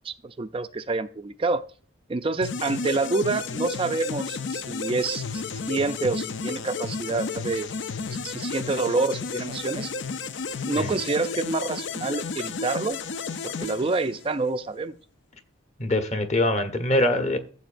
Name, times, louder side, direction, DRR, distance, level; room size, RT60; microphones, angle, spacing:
voice 1, 0.0-1.6 2.1-7.7 8.1-9.9 10.7-13.0 13.4-14.9, right 3 dB, 25° right, 0.4 m, -27 dB
sound 1, 2.4-14.5, left 4 dB, 60° left, 0.5 m, -32 dB
voice 2, 15.8-17.4, left 1 dB, 35° left, 1.1 m, -23 dB
14.5 x 7.7 x 2.6 m
head